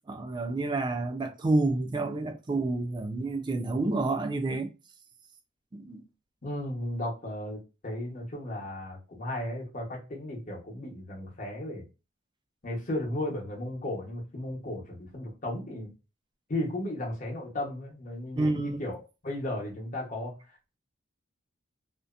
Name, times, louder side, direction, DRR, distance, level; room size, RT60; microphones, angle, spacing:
voice 1, 0.1-4.7 5.7-6.0 18.4-18.8, right 2 dB, 20° right, 0.3 m, -29 dB
voice 2, 6.4-11.8 12.6-15.9 16.5-19.0 19.2-20.3, left 1 dB, 40° left, 0.9 m, -35 dB
2.6 x 2.1 x 2.4 m
head